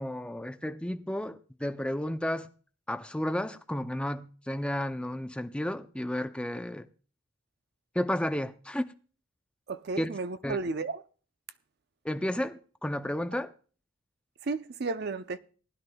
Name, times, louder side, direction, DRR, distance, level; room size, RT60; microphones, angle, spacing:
voice 1, 0.0-2.5 2.9-6.9 7.9-8.8 10.0-10.1 10.4-10.6 12.0-13.5, left 1 dB, 5° left, 0.5 m, -32 dB
voice 2, 9.7-11.0 14.4-15.4, right 3 dB, 50° right, 0.6 m, -33 dB
19.5 x 11.0 x 2.3 m
head